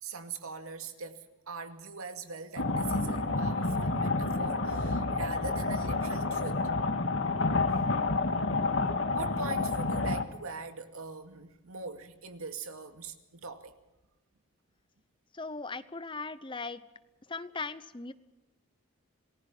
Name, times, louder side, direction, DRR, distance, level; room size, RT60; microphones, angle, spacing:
voice 1, 0.0-6.6 7.6-7.9 9.1-13.7, right 4 dB, 90° right, 2.4 m, -42 dB
sound 1, 2.6-10.2, left 3 dB, 65° left, 1.8 m, -29 dB
voice 2, 15.3-16.8 17.3-18.1, left 3 dB, 25° left, 0.8 m, -38 dB
27.5 x 20.0 x 5.6 m
head